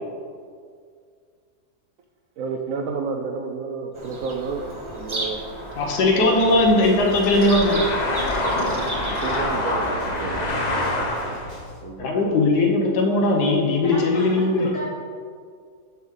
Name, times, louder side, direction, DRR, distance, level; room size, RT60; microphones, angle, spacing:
voice 1, 2.4-4.6 5.0-5.4 6.2-6.7 9.0-10.6 11.3-11.4 11.8-12.3, right 4 dB, 70° right, 4 dB, 0.8 m, -31 dB
Bird vocalization bird call bird song, 3.9-9.4, right 2 dB, 40° right, 0.4 m, -34 dB
sound 1, 4.4-11.6, left 1 dB, 40° left, 0.7 m, -27 dB
voice 2, 5.7-7.9 12.0-14.7, left 2 dB, 80° left, 0 dB, 1.4 m, -19 dB
sound 2, 6.5-11.8, left 1 dB, 20° right, 1.8 m, -40 dB
voice 3, 13.8-14.9, equal, 55° left, -5 dB, 1.3 m, -35 dB
7.1 x 5.8 x 3.6 m, 2.1 s
omnidirectional pair, 1.7 m